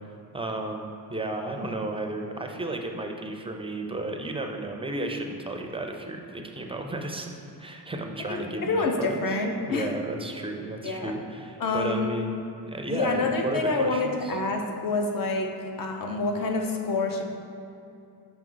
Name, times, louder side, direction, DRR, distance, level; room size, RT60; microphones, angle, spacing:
voice 1, 0.3-7.3 7.6-9.2 9.7-12.4 12.7-14.3, right 2 dB, 15° right, 3 dB, 0.4 m, -33 dB
voice 2, 8.2-9.9 10.8-11.1 11.6-12.1 12.9-17.2, left 3 dB, 55° left, 2 dB, 0.8 m, -27 dB
6.0 x 5.4 x 3.8 m, 2.7 s
wide cardioid pair, 135°, 40 cm